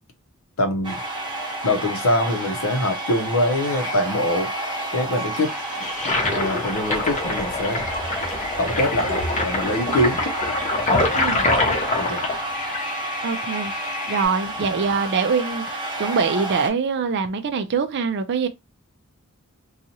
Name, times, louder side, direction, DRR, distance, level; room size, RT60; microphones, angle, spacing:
voice 1, 0.6-1.0 1.6-4.5 4.9-5.5 6.3-7.8 8.6-10.2 11.9-12.3, left 1 dB, 65° left, 0.7 m, -23 dB
sound 1, 0.8-16.7, right 1 dB, 20° right, 0.9 m, -31 dB
Toilet flush, 5.1-14.2, left 2 dB, 35° left, 0.8 m, -26 dB
sound 2, 5.9-10.8, left 3 dB, 15° left, 0.3 m, -37 dB
voice 2, 13.2-13.7 14.1-18.5, right 5 dB, 50° right, 0.4 m, -24 dB
2.8 x 2.3 x 2.7 m
head